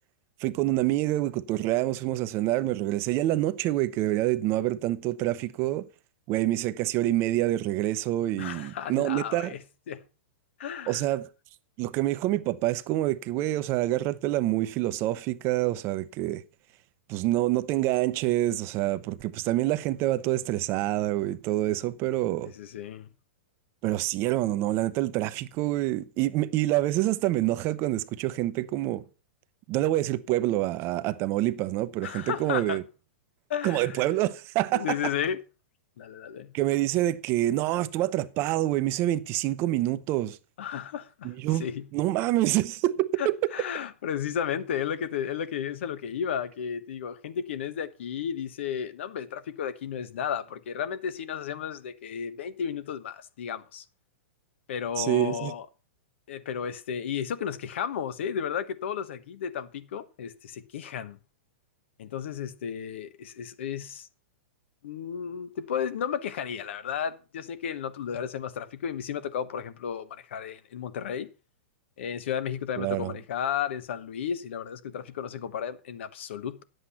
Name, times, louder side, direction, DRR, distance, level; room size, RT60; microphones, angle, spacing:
voice 1, 0.4-5.9 6.3-9.5 10.9-11.3 11.8-16.4 17.1-22.5 23.8-29.0 29.7-32.8 33.6-34.9 36.5-40.4 41.2-41.7 41.9-43.5 55.0-55.5 72.8-73.1, right 15 dB, 35° right, 0.7 m, -27 dB
voice 2, 8.4-9.6 9.9-10.0 10.6-11.0 22.4-23.1 32.0-32.8 33.5-34.0 34.7-35.4 36.0-36.5 40.6-41.3 41.6-41.9 43.2-53.8 54.7-55.7 56.3-61.2 62.0-64.1 64.8-71.3 72.0-76.6, left 8 dB, 70° left, 1.1 m, -33 dB
10.0 x 7.9 x 5.7 m
hypercardioid pair, 135°, 7 cm